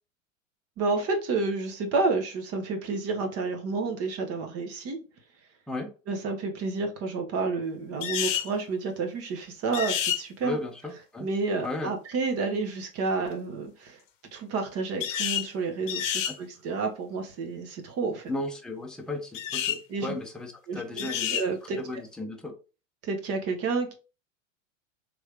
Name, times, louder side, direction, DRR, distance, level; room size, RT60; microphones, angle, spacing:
voice 1, 0.8-5.0 6.1-10.6 11.2-14.0 14.3-18.3 19.9-20.1 20.7-21.8 23.0-23.9, right 4 dB, 35° right, 1.0 m, -30 dB
sound 1, 8.0-8.5 9.7-10.2 15.0-15.5 15.9-16.4 19.3-19.8 21.0-21.5, left 10 dB, 65° left, 0.7 m, -29 dB
voice 2, 10.4-11.3 11.6-11.9 16.3-16.4 18.3-21.3 21.8-22.5, left 2 dB, ahead, 0.6 m, -35 dB
3.4 x 3.1 x 2.4 m
hypercardioid pair, 95°, 40 cm